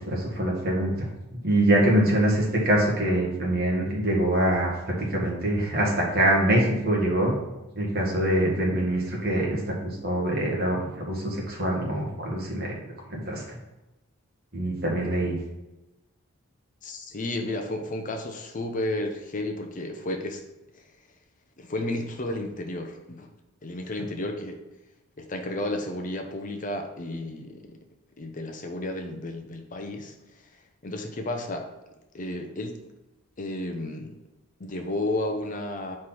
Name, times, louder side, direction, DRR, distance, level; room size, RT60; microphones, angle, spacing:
voice 1, 0.0-7.3 7.8-12.7 13.1-13.4 14.5-15.4, right 1 dB, 45° right, -2 dB, 1.7 m, -24 dB
voice 2, 16.8-20.4 20.7-20.8 21.6-23.3 23.6-24.6 25.2-27.8 28.2-30.2 30.8-31.7 32.1-32.8 33.4-34.2 34.6-36.0, left 1 dB, 35° left, 4 dB, 0.6 m, -32 dB
4.8 x 4.4 x 5.8 m, 1.0 s
head